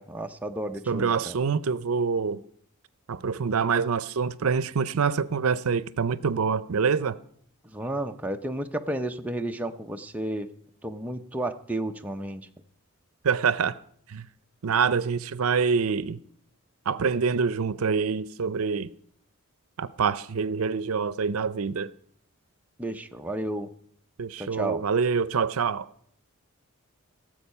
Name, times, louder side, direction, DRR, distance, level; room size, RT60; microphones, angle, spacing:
voice 1, 0.0-1.4 7.7-10.5 10.8-12.5 22.8-23.7 24.4-24.8, right 1 dB, 5° right, 0.5 m, -32 dB
voice 2, 0.9-2.4 3.1-7.2 13.2-13.8 14.1-14.2 14.6-16.2 16.9-18.9 19.8-21.9 24.2-25.9, right 5 dB, 75° right, 0.5 m, -26 dB
17.5 x 7.5 x 5.5 m
head